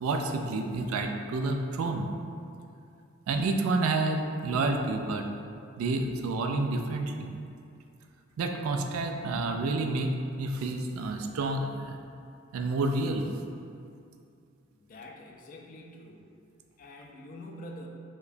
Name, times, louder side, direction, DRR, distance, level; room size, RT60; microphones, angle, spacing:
voice 1, 0.0-2.1 3.3-5.3 5.8-7.3 8.4-10.1 10.4-12.0 12.5-13.3, right 3 dB, 85° right, 4 dB, 0.3 m, -29 dB
voice 2, 14.7-16.4 16.8-17.9, left 1 dB, 40° left, 1 dB, 0.3 m, -46 dB
4.7 x 2.2 x 2.5 m, 2.5 s
head